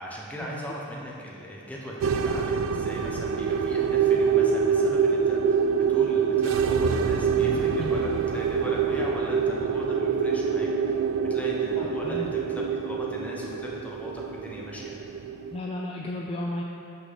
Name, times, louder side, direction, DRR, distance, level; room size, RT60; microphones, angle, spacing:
voice 1, 0.0-11.0 11.3-15.0, equal, 5° left, -4 dB, 0.8 m, -39 dB
sound 1, 2.0-15.6, right 6 dB, 80° right, 0.3 m, -25 dB
voice 2, 11.8-12.3 15.5-16.6, left 1 dB, 30° left, -2 dB, 0.3 m, -33 dB
5.6 x 4.0 x 6.1 m, 2.6 s
head